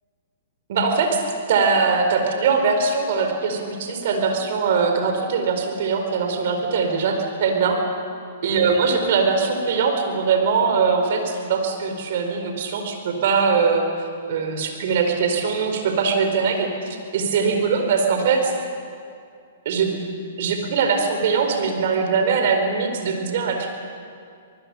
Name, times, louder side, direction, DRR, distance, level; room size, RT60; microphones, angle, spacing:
voice 1, 0.7-7.8 8.4-18.5 19.6-20.1 20.4-23.7, right 5 dB, 60° right, 4 dB, 4.6 m, -21 dB
25.5 x 20.0 x 7.2 m, 2.3 s
hypercardioid pair, 120°, 0 cm